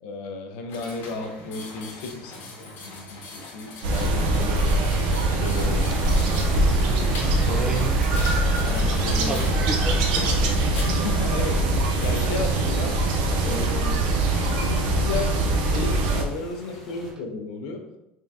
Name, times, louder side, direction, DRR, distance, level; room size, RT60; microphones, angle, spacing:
voice 1, 0.0-4.6 5.0-5.8 7.5-7.6 8.6-9.4 10.7-11.6 12.0-13.0 13.4-17.9, left 3 dB, 65° left, 0.6 m, -34 dB
sound 1, 0.7-14.5, left 3 dB, 45° left, 1.1 m, -41 dB
sound 2, 3.8-16.2, right 2 dB, 70° right, 0.6 m, -22 dB
sound 3, 5.6-17.1, left 1 dB, 5° left, 0.7 m, -41 dB
voice 2, 5.6-8.2 9.3-10.5, right 2 dB, 15° right, 0.3 m, -34 dB
3.6 x 3.3 x 2.7 m
cardioid pair, 150°, 5 cm